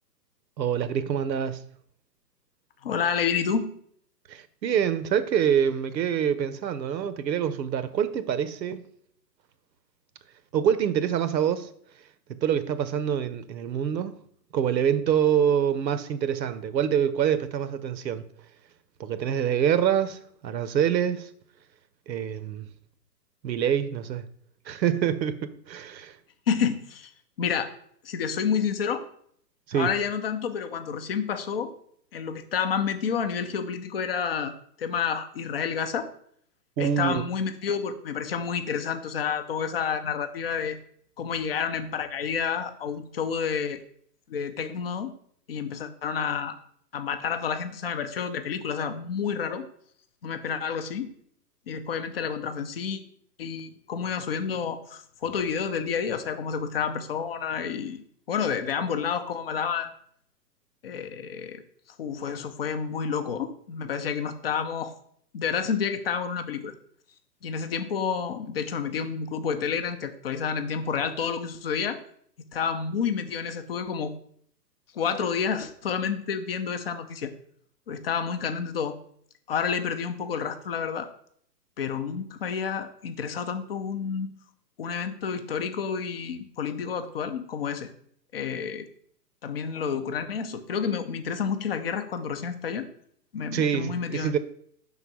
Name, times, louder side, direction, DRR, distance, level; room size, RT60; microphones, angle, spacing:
voice 1, 0.6-1.6 4.3-8.8 10.5-11.7 12.4-14.1 14.5-18.3 19.0-21.3 22.1-22.7 23.4-24.3 24.7-26.2 29.7-29.9 36.8-37.2 93.5-94.4, right 8 dB, 85° right, 0.8 m, -25 dB
voice 2, 2.8-3.7 26.5-27.1 27.4-27.7 28.0-29.0 29.7-31.7 32.1-36.1 36.8-40.8 41.2-43.8 44.3-45.1 45.5-46.5 46.9-49.6 50.2-51.1 51.7-53.0 53.4-59.9 60.8-61.6 62.0-64.9 65.3-66.7 67.4-72.0 72.5-74.1 74.9-77.3 77.9-79.0 79.5-81.1 81.8-84.3 84.8-87.9 88.3-88.9 89.4-92.9 93.3-94.3, left 6 dB, 40° left, 0.5 m, -29 dB
5.4 x 3.9 x 6.0 m
hypercardioid pair, 150°, 50 cm